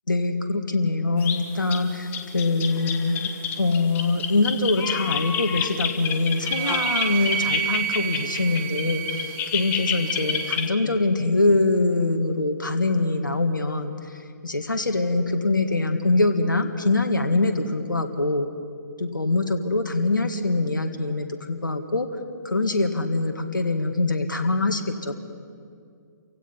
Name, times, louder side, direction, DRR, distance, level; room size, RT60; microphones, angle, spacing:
voice 1, 0.1-3.3 3.6-14.0 14.4-18.5 19.0-22.1 22.4-25.1, left 2 dB, 90° left, 6 dB, 1.8 m, -23 dB
sound 1, 1.2-1.4 1.7-1.8 2.1-10.7, left 8 dB, 20° left, 1.4 m, -29 dB
Wind instrument woodwind instrument, 6.4-10.6, right 14 dB, 30° right, 1.0 m, -30 dB
28.5 x 16.5 x 5.7 m, 2.3 s
figure-of-eight pair, 135°, 10 cm